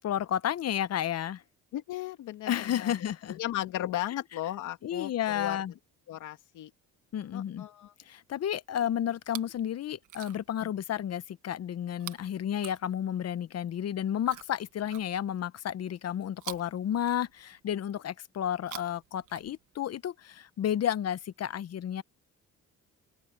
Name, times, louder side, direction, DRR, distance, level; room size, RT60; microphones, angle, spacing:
voice 1, 0.0-1.4 2.5-3.4 4.8-5.7 7.1-7.6 8.1-22.0, left 10 dB, 55° left, 0.9 m, -32 dB
voice 2, 1.7-2.9 3.3-5.6 6.1-6.7 7.3-7.9 10.6-10.7, left 13 dB, 85° left, 2.7 m, -36 dB
Chewing mastication, 9.1-9.6 10.0-10.6 11.9-13.3 14.2-15.5 16.3-17.6 18.5-19.9 20.8-20.9, right 13 dB, 80° right, 1.6 m, -47 dB
open air
cardioid pair, 90°, 30 cm